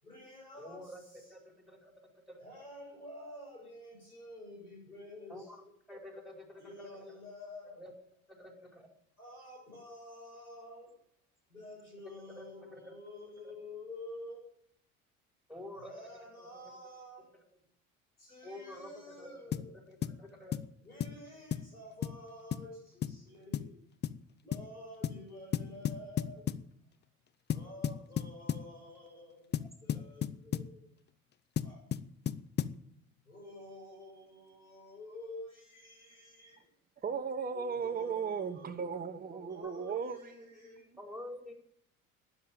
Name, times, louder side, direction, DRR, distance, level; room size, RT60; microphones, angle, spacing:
voice 1, 0.0-1.4 2.4-5.6 6.6-7.8 9.2-11.0 11.5-14.5 15.8-17.3 18.2-19.7 20.8-23.7 24.4-26.5 27.5-30.9 31.6-31.8 33.3-36.7 37.8-39.0 39.4-40.9, left 1 dB, 90° left, -2 dB, 7.2 m, -50 dB
voice 2, 0.6-1.0 1.3-2.6 5.3-5.6 5.9-6.7 7.8-7.9 8.4-8.9 12.4-12.5 12.7-12.9 13.4-13.5 15.5-15.9 16.4-16.5 18.4-19.4 19.9-20.6 29.6-29.7 37.5-37.9 39.6-39.7 41.0-41.5, left 1 dB, ahead, 2 dB, 4.9 m, -48 dB
sound 1, 19.5-19.7 20.0-20.2 20.5-20.7 21.0-21.2 21.5-21.7 22.0-22.2 22.5-22.7 23.0-23.2 23.5-23.7 24.0-24.2 24.5-24.7 25.0-25.2 25.5-26.7 27.5-28.7 29.5-30.7 31.6-32.8, left 9 dB, 25° left, 0.7 m, -34 dB
voice 3, 37.0-40.8, right 6 dB, 20° right, 6 dB, 1.3 m, -36 dB
12.5 x 10.5 x 9.3 m, 0.68 s
figure-of-eight pair, 65°, 44 cm